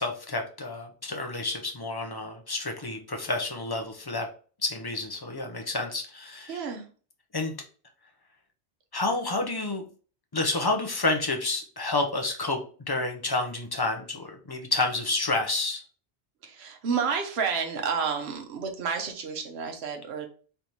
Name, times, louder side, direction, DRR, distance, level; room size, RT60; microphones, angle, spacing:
voice 1, 0.0-4.3 4.6-6.6 7.3-7.6 8.9-9.8 10.3-12.6 12.9-15.8, left 2 dB, 25° left, 3 dB, 0.6 m, -29 dB
voice 2, 6.5-6.8 16.4-20.3, right 6 dB, 65° right, 3 dB, 1.1 m, -30 dB
3.4 x 3.0 x 4.0 m, 0.39 s
omnidirectional pair, 1.2 m